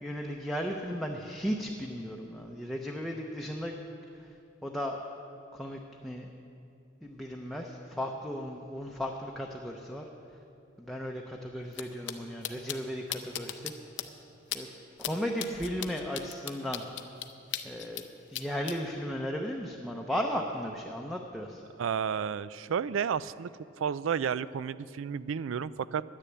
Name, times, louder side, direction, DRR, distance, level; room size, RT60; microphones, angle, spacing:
voice 1, 0.0-3.8 4.6-5.0 5.5-6.3 7.0-10.0 10.8-13.7 14.5-14.7 15.0-16.8 17.6-18.0 18.3-21.6, equal, ahead, 0 dB, 0.6 m, -35 dB
sound 1, 11.7-11.8 12.1-12.2 12.4-12.8 13.1-13.7 14.0-14.1 14.5-14.6 15.0-15.1 15.4-18.0 18.3-18.7, left 11 dB, 65° left, 0.7 m, -36 dB
voice 2, 21.8-23.5 23.8-26.2, right 7 dB, 85° right, 18 dB, 0.4 m, -32 dB
10.5 x 10.0 x 8.4 m, 2.6 s
head